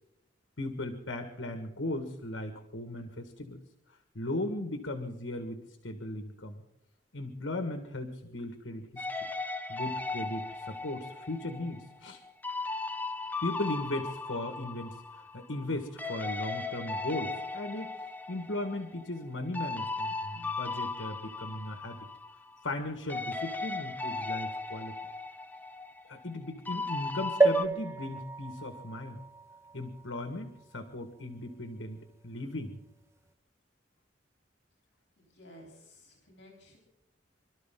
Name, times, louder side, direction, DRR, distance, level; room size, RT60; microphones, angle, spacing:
voice 1, 0.6-3.6 4.2-6.6 7.1-9.3 9.7-12.2 13.4-17.9 18.3-22.0 22.6-25.0 26.1-29.2 29.7-32.8, left 1 dB, 80° left, 6 dB, 1.9 m, -37 dB
sound 1, 9.0-15.7 16.0-22.8 23.1-27.7, left 3 dB, 10° left, 0.6 m, -37 dB
sound 2, 27.4-31.1 31.7-31.8 32.0-32.1, right 3 dB, 15° right, 1.1 m, -31 dB
voice 2, 35.2-36.8, equal, 60° left, 0 dB, 4.0 m, -54 dB
27.0 x 13.0 x 3.9 m, 0.85 s
head